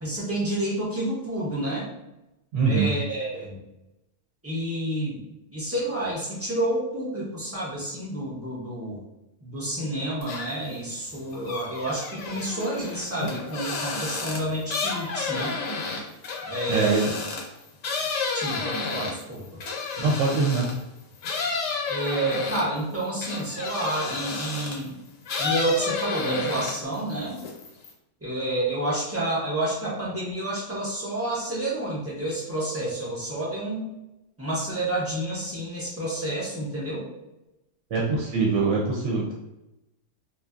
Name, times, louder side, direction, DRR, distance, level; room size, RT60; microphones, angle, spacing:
voice 1, 0.0-1.9 2.6-3.6 4.4-5.2 5.5-9.0 9.4-15.6 16.4-17.1 18.3-19.6 21.9-25.0 25.4-27.4 28.2-33.9 34.4-37.1, right 1 dB, 20° right, -6 dB, 0.4 m, -29 dB
voice 2, 2.5-3.0 16.7-17.1 20.0-20.7 37.9-39.3, right 4 dB, 70° right, -3 dB, 0.8 m, -23 dB
sound 1, 10.2-10.7 11.1-20.8 21.2-24.9 25.2-26.9 27.3-27.9, left 4 dB, 75° left, 1.0 m, -31 dB
2.6 x 2.3 x 2.4 m, 0.93 s
omnidirectional pair, 1.4 m